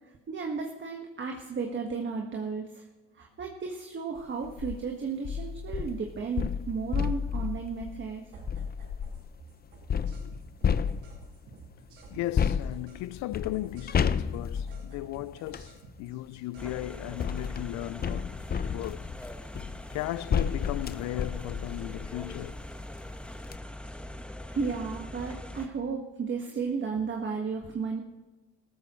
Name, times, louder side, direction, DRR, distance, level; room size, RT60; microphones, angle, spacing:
voice 1, 0.3-2.8 3.1-8.2 24.5-28.0, right 5 dB, 40° right, 1.7 m, -34 dB
sound 1, 4.4-4.8 5.2-9.3 9.9-11.4 12.3-15.7 16.7-22.6 23.0-23.1 23.4-23.6, left 7 dB, 30° left, 0.7 m, -32 dB
sound 2, 8.3-9.2 9.5-13.0 13.3-16.7 21.5-21.8 22.4-23.0 23.3-24.0, right 3 dB, 80° right, 5.9 m, -51 dB
voice 2, 12.1-18.3 18.7-19.1 19.9-22.6, left 16 dB, 70° left, 0.5 m, -36 dB
sound 3, 16.6-25.7, left 1 dB, 5° left, 1.3 m, -42 dB
17.5 x 14.0 x 3.2 m
supercardioid pair, 65°, 29 cm